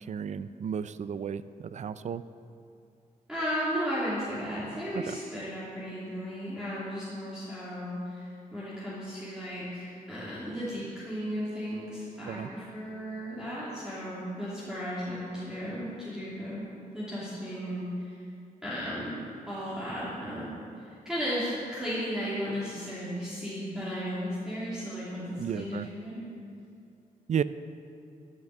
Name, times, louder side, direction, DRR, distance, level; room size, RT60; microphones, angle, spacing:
voice 1, 0.0-2.2 4.9-5.2 12.3-12.5 25.4-25.9 27.3-27.4, right 7 dB, 50° right, 14 dB, 0.4 m, -33 dB
voice 2, 3.3-16.6 16.9-18.3 18.6-26.3, equal, 5° right, -11 dB, 3.0 m, -35 dB
12.5 x 5.9 x 7.7 m, 2.5 s
cardioid pair, 110°, 15 cm